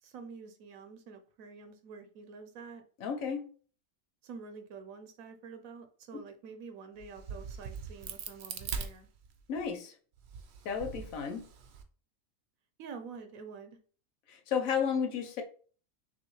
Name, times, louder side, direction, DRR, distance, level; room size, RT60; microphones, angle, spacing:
voice 1, 0.0-2.8 4.2-9.1 12.8-13.8, right 5 dB, 80° right, 8 dB, 1.0 m, -47 dB
voice 2, 3.0-3.4 9.5-9.9 10.6-11.4 14.3-15.4, left 6 dB, 75° left, 5 dB, 1.1 m, -32 dB
Crack, 7.0-9.6 10.2-11.8, right 6 dB, 60° right, 0.7 m, -41 dB
6.1 x 2.6 x 3.0 m, 0.42 s
omnidirectional pair, 1.4 m